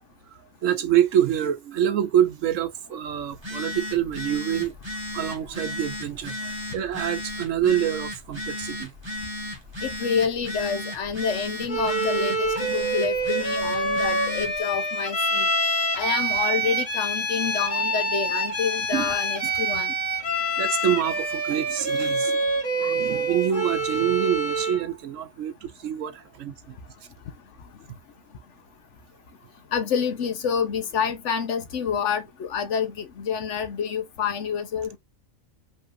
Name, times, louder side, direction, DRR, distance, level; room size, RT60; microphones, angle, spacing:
voice 1, 0.3-4.7 5.1-8.9 18.9-19.1 19.4-19.5 20.6-22.4 22.8-26.8, right 10 dB, 70° right, 1.0 m, -26 dB
Telephone, 3.3-14.6, left 1 dB, 20° right, 1.6 m, -35 dB
voice 2, 9.8-15.5 15.9-19.9 29.7-35.0, left 6 dB, 65° left, 1.1 m, -28 dB
Bowed string instrument, 11.7-24.9, right 2 dB, 35° left, 2.0 m, -26 dB
5.3 x 3.4 x 2.5 m
omnidirectional pair, 1.4 m